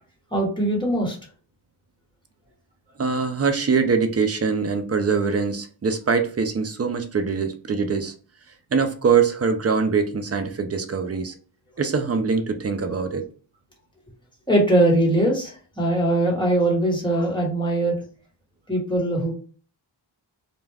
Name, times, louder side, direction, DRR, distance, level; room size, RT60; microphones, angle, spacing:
voice 1, 0.3-1.2 12.9-13.0 14.5-17.9 18.7-19.3, right 1 dB, 10° left, 1.2 m, -21 dB
voice 2, 3.0-8.1 8.7-11.3 11.8-13.3, right 5 dB, 35° right, 0.5 m, -23 dB
2.3 x 2.2 x 3.3 m
wide cardioid pair, 70°, 45 cm